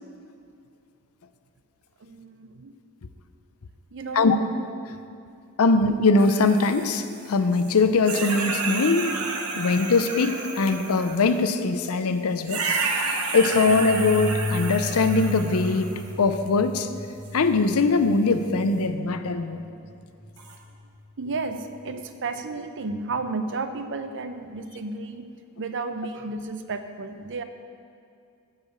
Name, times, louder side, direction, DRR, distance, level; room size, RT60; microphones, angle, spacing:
voice 1, 2.0-2.7 3.9-4.3 4.9-5.0 9.5-9.7 21.2-25.3 25.6-27.4, right 3 dB, 55° right, 8 dB, 0.6 m, -33 dB
voice 2, 5.6-9.1 9.5-12.6 13.1-16.9 17.3-19.6, left 3 dB, 75° left, 10 dB, 0.6 m, -22 dB
sound 1, 6.2-7.8 8.0-11.4 12.4-16.1 17.2-17.3 20.4-20.6, right 4 dB, 85° right, 1.1 m, -31 dB
sound 2, 13.4-21.8, left 1 dB, 5° left, 2.2 m, -35 dB
10.0 x 4.9 x 7.7 m, 2.5 s
head